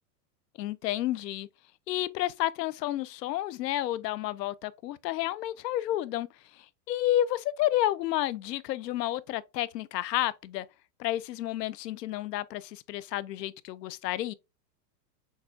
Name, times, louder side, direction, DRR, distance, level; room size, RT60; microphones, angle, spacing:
voice 1, 0.6-1.5 1.9-6.3 6.5-10.7 11.0-14.3, left 14 dB, 80° left, 0.6 m, -30 dB
6.4 x 2.3 x 2.7 m
supercardioid pair, 170°, 49 cm